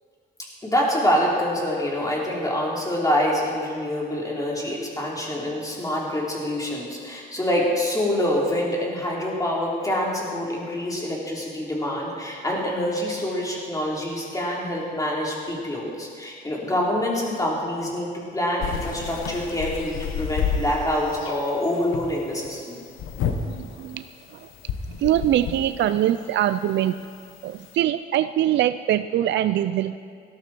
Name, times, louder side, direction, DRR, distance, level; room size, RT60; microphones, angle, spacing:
voice 1, 0.6-18.1 18.3-22.8, left 1 dB, 15° left, -4 dB, 4.1 m, -26 dB
sound 1, 18.6-27.8, left 7 dB, 85° left, 1.3 m, -32 dB
voice 2, 23.4-24.0 24.3-24.4 25.0-27.0 27.4-30.0, right 12 dB, 65° right, 11 dB, 0.4 m, -23 dB
18.0 x 12.5 x 4.5 m, 2.2 s
cardioid pair, 90°, 20 cm